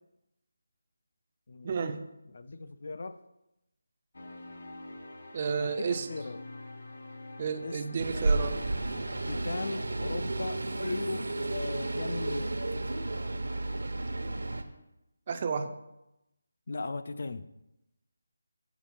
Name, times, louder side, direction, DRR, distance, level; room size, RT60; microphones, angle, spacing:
voice 1, 1.6-2.1 5.3-6.1 7.4-8.6 15.3-15.8, right 5 dB, 25° right, 9 dB, 0.4 m, -32 dB
voice 2, 2.3-3.2 5.6-6.4 7.6-7.8 9.3-12.5 16.7-17.5, left 3 dB, 50° left, 11 dB, 0.4 m, -37 dB
sound 1, 4.1-9.4, left 2 dB, 65° left, 1.2 m, -47 dB
sound 2, 8.0-14.6, right 2 dB, 85° right, 0.9 m, -32 dB
7.1 x 5.3 x 5.6 m, 0.90 s
figure-of-eight pair, 175°, 0 cm